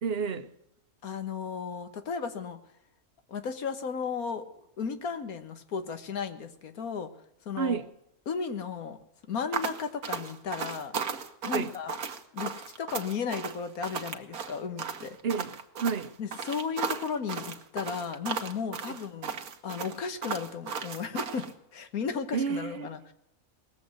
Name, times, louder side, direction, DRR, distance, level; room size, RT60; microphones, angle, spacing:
voice 1, 0.0-0.5 7.6-7.9 11.5-11.7 15.2-15.5 15.8-16.1 18.9-19.0 22.3-22.9, right 6 dB, 50° right, 0.9 m, -30 dB
voice 2, 1.0-2.6 3.3-4.4 4.8-7.1 7.4-7.8 8.3-9.0 9.3-11.0 11.4-11.9 12.3-12.5 12.8-15.2 16.2-19.4 19.6-23.1, left 6 dB, 90° left, 1.7 m, -34 dB
sound 1, 9.5-21.5, right 6 dB, 85° right, 1.6 m, -35 dB
19.0 x 7.7 x 7.8 m
omnidirectional pair, 1.5 m